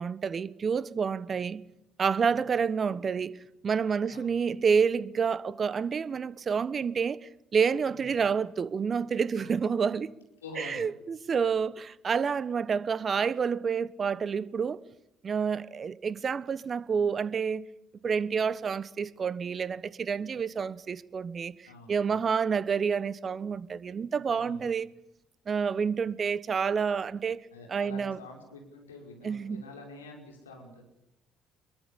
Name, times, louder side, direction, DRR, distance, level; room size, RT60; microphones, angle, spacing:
voice 1, 0.0-1.6 2.0-10.1 10.6-14.8 15.2-17.6 18.0-24.9 25.5-27.4 27.7-28.2 29.2-29.6, right 6 dB, 40° right, 1.2 m, -29 dB
voice 2, 4.1-4.4 7.9-8.2 9.3-9.6 10.4-10.8 21.6-22.2 24.4-24.7 27.5-30.8, left 2 dB, 80° left, 5.2 m, -47 dB
26.0 x 23.0 x 8.6 m
figure-of-eight pair, 50°, 0 cm